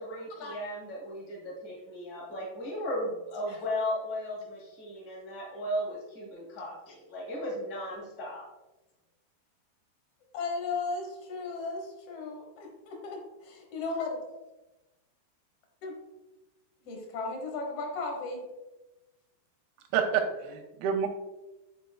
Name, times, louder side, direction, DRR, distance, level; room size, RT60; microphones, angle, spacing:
voice 1, 0.0-8.4, equal, 30° left, -3 dB, 1.5 m, -36 dB
voice 2, 10.3-14.2 15.8-16.0 16.8-18.4, left 3 dB, 80° left, 1 dB, 1.3 m, -36 dB
voice 3, 19.9-21.1, right 7 dB, 80° right, 5 dB, 2.2 m, -28 dB
10.0 x 4.4 x 2.3 m, 1.0 s
omnidirectional pair, 4.6 m